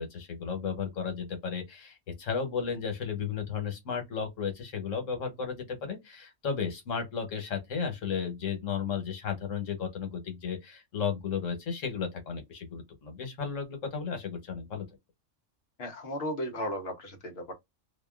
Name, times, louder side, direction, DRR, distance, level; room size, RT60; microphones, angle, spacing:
voice 1, 0.0-14.8, left 6 dB, 80° left, 1.4 m, -34 dB
voice 2, 15.8-17.5, equal, 60° left, 1.0 m, -35 dB
2.8 x 2.1 x 2.3 m
omnidirectional pair, 1.3 m